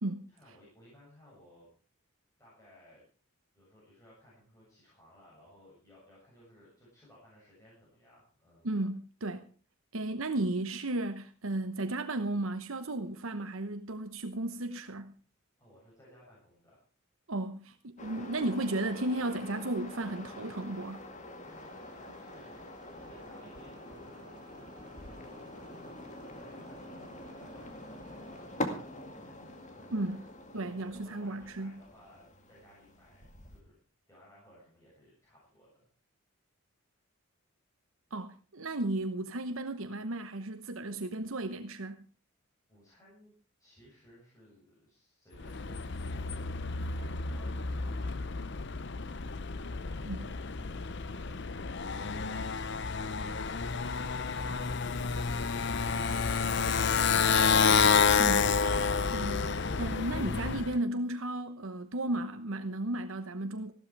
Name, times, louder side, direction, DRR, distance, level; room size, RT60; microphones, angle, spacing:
voice 1, 0.3-1.7 2.4-3.0 3.5-8.7 10.1-10.2 15.6-16.8 21.4-22.6 22.9-24.3 25.0-33.7 34.1-35.9 42.7-43.3 43.6-46.6 46.9-48.3 49.5-51.3, equal, 15° left, 7.3 m, -59 dB
voice 2, 8.6-9.4 9.9-15.1 17.3-21.0 29.9-30.2 30.5-31.8 38.1-42.0 50.0-50.3 58.2-58.5 59.1-59.5 59.8-63.7, right 2 dB, 70° right, 1.0 m, -34 dB
sound 1, 18.0-33.6, left 1 dB, 35° left, 2.1 m, -45 dB
sound 2, 21.4-28.7, right 2 dB, 20° right, 6.0 m, -59 dB
Motorcycle, 45.4-60.8, left 5 dB, 55° left, 0.7 m, -29 dB
15.0 x 13.0 x 4.7 m
head